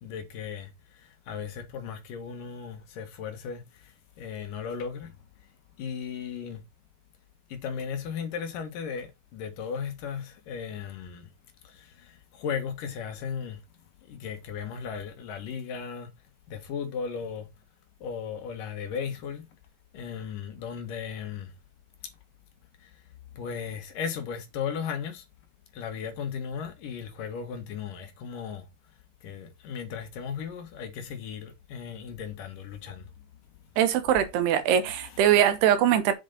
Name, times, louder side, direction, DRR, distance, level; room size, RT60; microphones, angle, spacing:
voice 1, 0.0-5.1 5.8-6.6 7.5-11.3 11.6-13.6 14.1-16.1 16.5-17.5 18.0-19.5 19.9-21.5 22.8-22.9 23.3-25.3 25.7-28.6 29.2-33.1 34.9-35.4, left 7 dB, 65° left, 2.7 m, -36 dB
voice 2, 33.8-36.1, right 10 dB, 90° right, 3.3 m, -22 dB
8.0 x 7.2 x 4.0 m
omnidirectional pair, 4.5 m